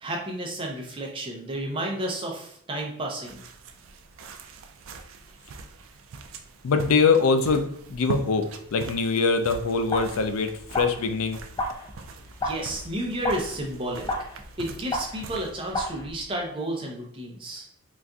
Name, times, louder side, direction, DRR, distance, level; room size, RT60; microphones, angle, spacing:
voice 1, 0.0-3.4 12.4-14.1 14.6-17.7, right 1 dB, 25° right, 0 dB, 0.6 m, -32 dB
sound 1, 3.2-16.0, right 3 dB, 70° right, 0.4 m, -42 dB
voice 2, 6.6-11.4, left 4 dB, 90° left, 8 dB, 0.4 m, -23 dB
sound 2, 9.6-16.5, left 1 dB, 20° left, 0.3 m, -34 dB
4.0 x 2.4 x 2.3 m, 0.65 s
head